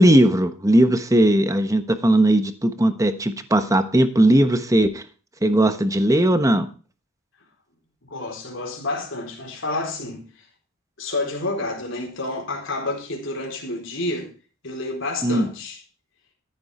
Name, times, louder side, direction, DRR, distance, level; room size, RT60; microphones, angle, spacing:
voice 1, 0.0-5.0 5.4-6.7 15.2-15.5, right 1 dB, 15° right, 1.1 m, -18 dB
voice 2, 8.0-10.2 11.0-14.3 14.6-15.8, left 2 dB, 65° left, 4.3 m, -29 dB
14.5 x 8.7 x 4.3 m
head